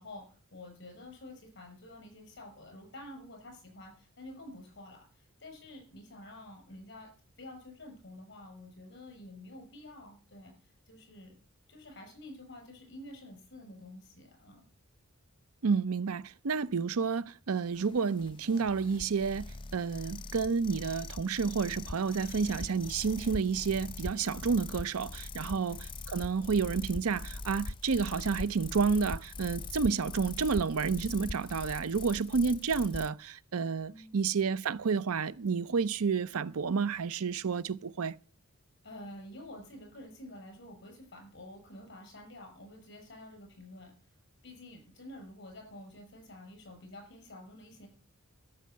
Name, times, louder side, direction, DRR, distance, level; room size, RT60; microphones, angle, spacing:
voice 1, 0.0-7.1 7.4-11.3 11.7-14.7 25.4-25.7 33.8-34.2 38.8-44.1 44.4-47.9, left 1 dB, 50° left, 6.4 m, -49 dB
voice 2, 15.6-25.8 26.1-38.1, right 5 dB, 75° right, 0.6 m, -30 dB
sound 1, 17.7-33.1, left 3 dB, 20° left, 0.6 m, -42 dB
13.0 x 6.5 x 9.2 m
head